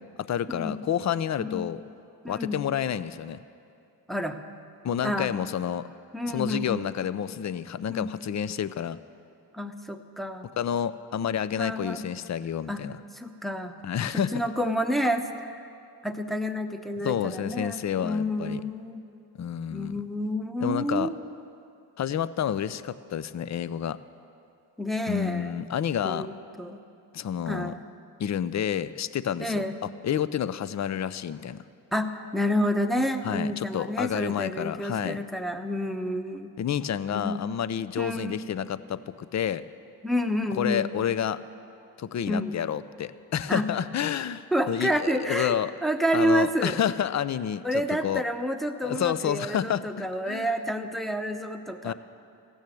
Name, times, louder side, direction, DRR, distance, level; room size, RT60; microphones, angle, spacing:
voice 1, 0.3-1.8 2.3-3.4 4.8-5.8 6.3-9.0 10.6-12.9 13.8-14.4 17.0-18.6 19.4-20.0 20.6-21.1 22.0-24.0 25.1-26.3 27.1-27.7 28.2-31.6 33.2-35.2 36.6-39.6 40.6-41.4 42.0-45.7 46.1-48.2 48.8-50.5 51.8-51.9, left 9 dB, 40° left, 15 dB, 0.5 m, -29 dB
voice 2, 2.2-2.7 4.1-4.4 5.0-5.4 6.1-6.9 7.9-8.1 9.5-10.5 11.5-12.0 12.7-12.9 13.1-13.8 14.1-15.6 16.0-19.0 19.7-21.1 24.8-25.6 26.0-26.8 27.5-27.8 29.4-29.7 31.9-36.5 37.1-37.5 38.0-38.4 40.0-40.9 42.3-42.5 43.5-43.7 44.5-46.8 47.6-51.9, equal, ahead, 5 dB, 0.9 m, -29 dB
15.5 x 6.4 x 8.4 m, 2.5 s
supercardioid pair, 50°, 44 cm